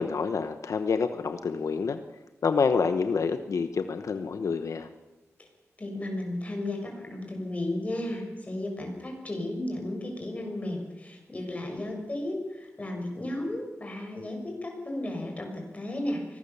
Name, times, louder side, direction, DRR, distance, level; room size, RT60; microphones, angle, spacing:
voice 1, 0.0-2.0 2.4-4.9, left 5 dB, 80° left, 9 dB, 1.1 m, -27 dB
voice 2, 5.8-16.4, left 1 dB, 25° left, 2 dB, 6.6 m, -34 dB
24.5 x 19.0 x 7.1 m, 1.1 s
wide cardioid pair, 115°, 5 cm